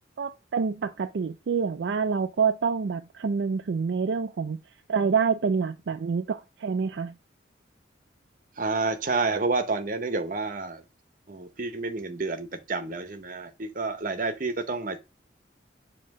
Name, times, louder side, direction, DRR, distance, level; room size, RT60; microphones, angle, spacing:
voice 1, 0.2-4.6 4.9-7.1, right 5 dB, 70° right, 0.4 m, -27 dB
voice 2, 8.6-10.8 11.3-15.0, right 3 dB, 45° right, 0.8 m, -29 dB
7.4 x 2.9 x 4.7 m
head